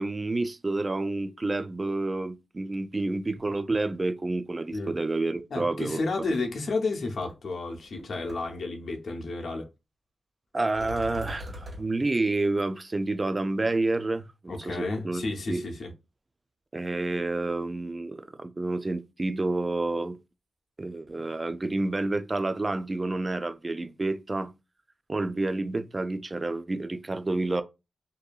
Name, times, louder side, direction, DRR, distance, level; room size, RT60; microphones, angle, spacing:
voice 1, 0.0-6.0 10.5-15.6 16.7-20.2 20.8-24.5 25.1-27.6, right 2 dB, 30° right, 0.3 m, -29 dB
voice 2, 5.5-9.7 14.5-15.9, left 3 dB, 60° left, 0.7 m, -31 dB
sound 1, 7.3-7.4 7.7-8.0 8.3-8.4 10.7-11.8, left 1 dB, 50° right, 1.6 m, -40 dB
2.6 x 2.6 x 2.3 m
wide cardioid pair, 95°, 0 cm